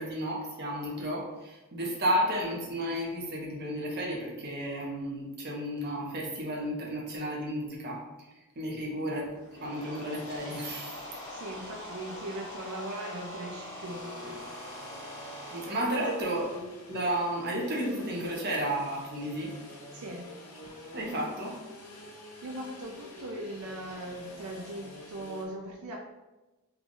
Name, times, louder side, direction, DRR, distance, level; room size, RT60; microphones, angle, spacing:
voice 1, 0.0-8.1 8.6-9.2 9.6-11.0 15.5-19.5 20.9-21.6, right 1 dB, 45° right, -2 dB, 0.8 m, -32 dB
sound 1, 9.3-15.7, left 1 dB, 60° left, 1.3 m, -43 dB
voice 2, 11.3-14.4 15.9-16.0 19.9-20.3 22.4-26.0, right 1 dB, 75° right, -1 dB, 0.4 m, -40 dB
sound 2, 13.8-25.4, left 2 dB, 80° left, 0.8 m, -48 dB
3.3 x 2.4 x 3.8 m, 1.1 s
head